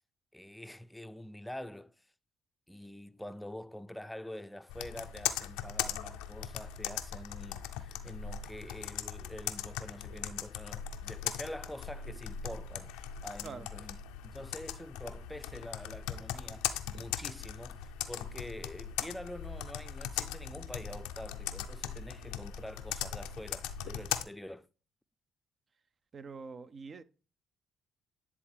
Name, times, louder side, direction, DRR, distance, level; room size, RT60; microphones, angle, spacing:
voice 1, 0.3-1.9 2.7-12.9 13.2-14.0 14.2-24.7, left 1 dB, 5° left, 0.5 m, -46 dB
Computer keyboard, 4.7-24.2, left 10 dB, 85° left, 0.5 m, -39 dB
voice 2, 26.1-27.0, right 5 dB, 50° right, 0.6 m, -45 dB
10.5 x 3.6 x 3.3 m
hypercardioid pair, 55°, 0 cm